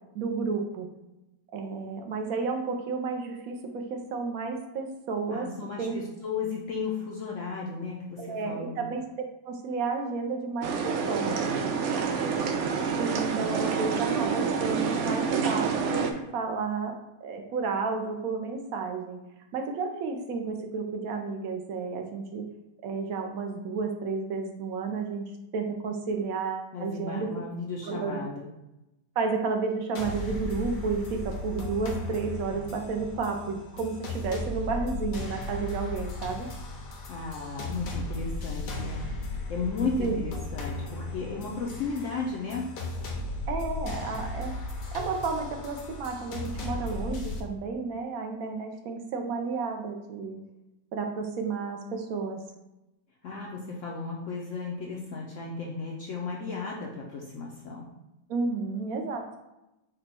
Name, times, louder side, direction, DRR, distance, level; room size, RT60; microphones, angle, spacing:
voice 1, 0.1-0.9 1.5-5.5 5.8-6.0 8.2-11.5 13.0-19.2 19.5-22.5 22.8-27.3 27.8-28.3 29.2-36.5 40.0-40.2 43.5-44.5 44.9-50.4 50.9-52.4 58.3-59.3, right 4 dB, 65° right, 3 dB, 1.0 m, -32 dB
voice 2, 5.3-8.8 26.7-28.5 37.1-39.1 39.5-42.7 53.2-57.9, left 4 dB, 65° left, -2 dB, 0.7 m, -34 dB
sound 1, 10.6-16.1, right 6 dB, 80° right, 0.6 m, -28 dB
sound 2, 30.0-47.4, left 2 dB, 85° left, 1.4 m, -36 dB
5.1 x 2.2 x 4.2 m, 0.95 s
omnidirectional pair, 1.8 m